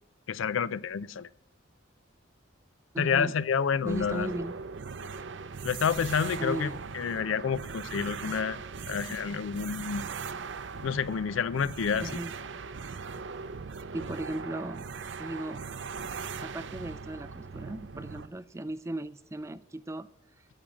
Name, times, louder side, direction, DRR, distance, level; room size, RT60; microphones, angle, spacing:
voice 1, 0.3-1.3 3.0-4.3 5.6-8.6 8.9-10.0 10.8-12.1, left 6 dB, 80° left, 18 dB, 0.4 m, -29 dB
voice 2, 2.9-3.4 3.8-4.5 6.4-6.8 12.0-12.3 13.9-15.6 16.4-20.1, right 1 dB, 15° right, 14 dB, 0.3 m, -37 dB
sound 1, 3.9-18.3, right 5 dB, 65° right, 0.6 m, -39 dB
11.0 x 7.5 x 7.0 m, 0.78 s
head